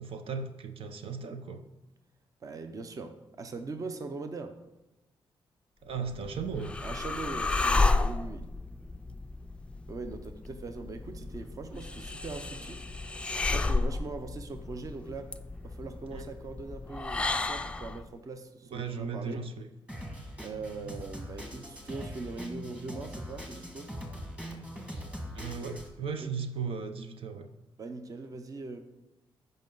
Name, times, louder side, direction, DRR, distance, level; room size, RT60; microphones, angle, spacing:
voice 1, 0.0-1.6 5.8-6.8 16.1-16.3 18.7-19.7 25.3-27.5, right 5 dB, 75° right, 7 dB, 0.8 m, -36 dB
voice 2, 2.4-4.6 6.8-8.5 9.9-12.9 13.2-19.4 20.4-23.9 26.2-26.3 27.8-28.8, right 3 dB, 40° right, 8 dB, 0.7 m, -41 dB
sound 1, 6.0-18.1, left 3 dB, 10° left, 0.4 m, -32 dB
Drum kit, 19.9-25.9, equal, 10° right, 1.7 m, -41 dB
14.5 x 5.4 x 3.9 m, 1.0 s
wide cardioid pair, 130°, 9 cm